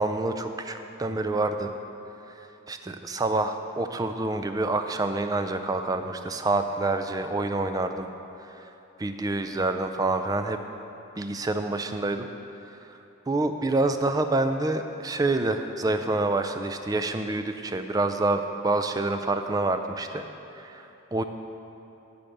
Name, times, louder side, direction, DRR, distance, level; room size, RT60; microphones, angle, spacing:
voice 1, 0.0-1.7 2.7-8.1 8.6-8.7 9.0-10.6 11.2-12.3 12.9-13.0 13.3-20.3 20.6-21.2, right 2 dB, 15° right, 8 dB, 0.3 m, -27 dB
12.0 x 4.3 x 6.5 m, 2.9 s
head